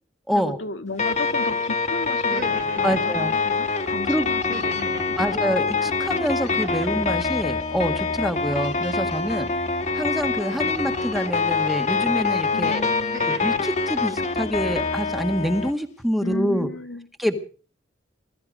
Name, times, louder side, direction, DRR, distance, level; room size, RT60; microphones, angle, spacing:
voice 1, 0.3-5.4 12.5-13.3 16.2-17.1, left 2 dB, 85° left, 7 dB, 1.8 m, -34 dB
sound 1, 1.0-15.7, left 4 dB, 40° left, 2.0 m, -25 dB
sound 2, 2.2-3.1 4.5-5.2 6.5-7.1 8.5-9.1 10.5-11.1 12.0-12.4 12.8-13.7, right 2 dB, 45° right, 3.3 m, -39 dB
voice 2, 2.8-3.3 4.1-4.3 5.2-9.5 9.9-12.9 13.3-16.7 17.2-17.5, equal, ahead, 7 dB, 1.8 m, -26 dB
21.0 x 13.0 x 5.0 m, 0.40 s
head